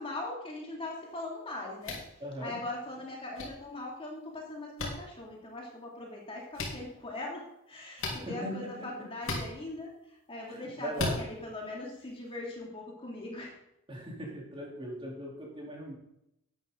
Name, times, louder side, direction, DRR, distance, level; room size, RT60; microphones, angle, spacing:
voice 1, 0.0-2.0 2.4-9.9 10.3-13.5, left 2 dB, 25° left, -2 dB, 2.5 m, -40 dB
sound 1, 1.8-2.1 3.4-3.5 4.8-4.9 6.5-6.7 8.0-8.2 9.2-9.5 10.9-11.2, left 2 dB, 65° left, 3.5 m, -33 dB
voice 2, 2.2-2.6 8.1-9.1 10.5-11.2 13.9-15.9, equal, 25° right, -3 dB, 3.4 m, -39 dB
13.0 x 9.7 x 3.8 m, 0.82 s
head